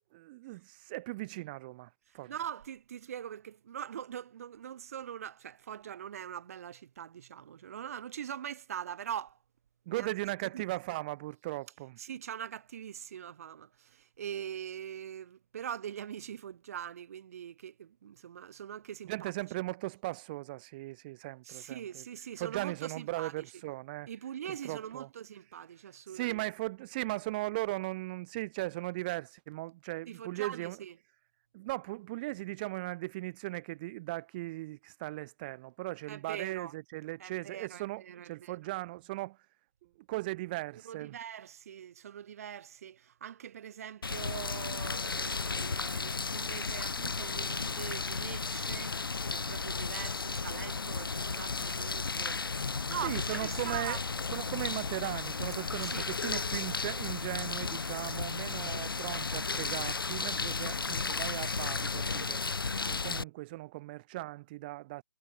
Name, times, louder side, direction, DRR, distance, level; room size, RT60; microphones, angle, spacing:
voice 1, 0.1-2.3 9.9-12.0 19.0-22.0 22.4-24.1 24.5-25.1 26.1-30.8 31.5-39.4 40.1-41.2 53.0-54.0 54.3-62.4 62.8-65.0, right 19 dB, 25° right, 3.7 m, -38 dB
voice 2, 2.3-9.4 9.9-10.1 10.4-10.6 12.0-19.3 21.4-23.3 24.1-26.4 30.1-30.9 36.1-36.7 37.2-38.6 40.8-49.0 49.3-54.0 55.8-56.1 58.5-59.1, right 9 dB, 40° right, 2.3 m, -43 dB
sound 1, 44.0-63.2, left 4 dB, 80° left, 3.6 m, -34 dB
hypercardioid pair, 155°, 12 cm